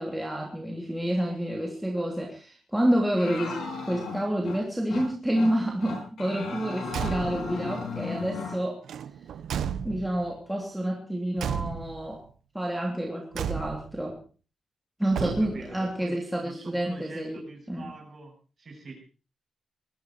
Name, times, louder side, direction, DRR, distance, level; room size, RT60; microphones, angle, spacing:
voice 1, 0.0-3.6 3.9-8.8 9.8-12.2 12.5-14.2 15.0-17.4 17.7-17.9, right 1 dB, 5° right, 0 dB, 3.0 m, -29 dB
sound 1, 3.1-4.6 4.9-5.1 5.4-5.5 5.8-8.6, left 5 dB, 90° left, 7.9 m, -35 dB
Car / Truck / Slam, 6.8-7.6 8.8-10.3 11.4-12.1 13.3-14.0 15.1-15.8, right 8 dB, 90° right, 1.1 m, -33 dB
voice 2, 15.2-19.0, right 3 dB, 35° right, 3 dB, 7.4 m, -45 dB
20.5 x 14.5 x 4.6 m, 0.37 s
wide cardioid pair, 150°, 0 cm